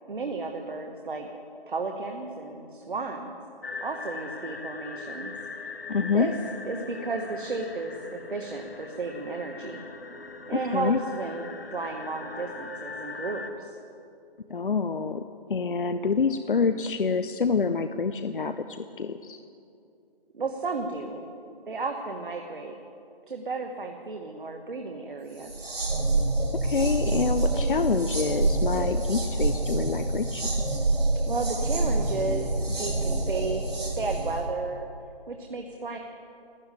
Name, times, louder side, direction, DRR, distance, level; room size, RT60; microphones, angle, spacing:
voice 1, 0.1-1.3 1.7-3.3 3.8-5.3 6.1-6.3 6.6-9.9 10.5-13.7 20.3-21.2 21.7-22.7 23.3-25.5 31.3-34.9 35.3-36.0, right 3 dB, 55° right, 3 dB, 1.3 m, -33 dB
sound 1, 3.6-13.5, left 4 dB, 75° left, 1.6 m, -40 dB
voice 2, 5.9-6.3 10.7-11.0 14.5-15.2 15.5-19.4 26.6-30.5, left 5 dB, 60° left, 9 dB, 0.6 m, -27 dB
sound 2, 25.4-34.4, right 2 dB, 70° right, 4.6 m, -27 dB
12.5 x 10.5 x 9.0 m, 2.5 s
figure-of-eight pair, 160°, 31 cm